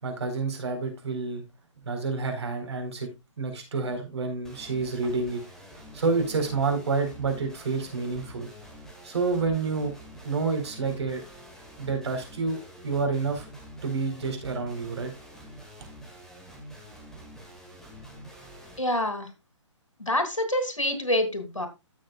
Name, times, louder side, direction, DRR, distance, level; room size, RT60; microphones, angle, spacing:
voice 1, 0.0-1.4 1.9-3.1 3.4-5.4 5.9-8.5 9.0-9.9 10.2-11.2 11.8-13.4 13.8-15.1, right 4 dB, 60° right, 4 dB, 4.3 m, -29 dB
sound 1, 4.4-18.8, equal, 5° left, 2.1 m, -47 dB
voice 2, 18.8-19.3 20.0-21.7, left 1 dB, 85° left, 7 dB, 3.0 m, -26 dB
15.0 x 6.5 x 2.4 m, 0.24 s
figure-of-eight pair, 135°, 16 cm